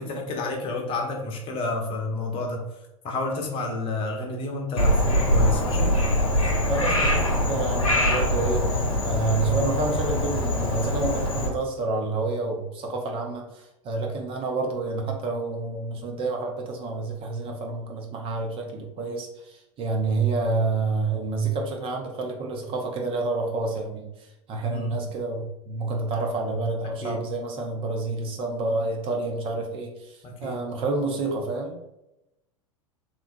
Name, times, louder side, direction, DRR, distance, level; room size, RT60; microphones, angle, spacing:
voice 1, 0.0-2.6 3.0-6.0 24.7-24.9 27.0-27.2 30.2-30.6, left 2 dB, 30° left, 2 dB, 0.8 m, -30 dB
Frog, 4.8-11.5, left 1 dB, 80° left, 0.9 m, -23 dB
voice 2, 6.7-31.8, right 3 dB, 30° right, 2 dB, 0.6 m, -29 dB
3.5 x 3.1 x 2.5 m, 0.90 s
figure-of-eight pair, 90°, 17 cm